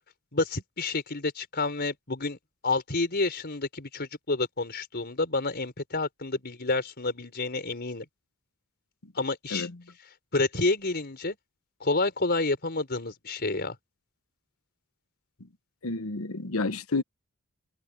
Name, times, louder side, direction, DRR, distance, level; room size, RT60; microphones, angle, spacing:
voice 1, 0.3-2.4 2.6-8.1 9.1-9.7 10.3-11.4 11.8-13.7, left 3 dB, 50° left, 4.7 m, -29 dB
voice 2, 15.8-17.0, left 3 dB, 75° left, 1.1 m, -30 dB
head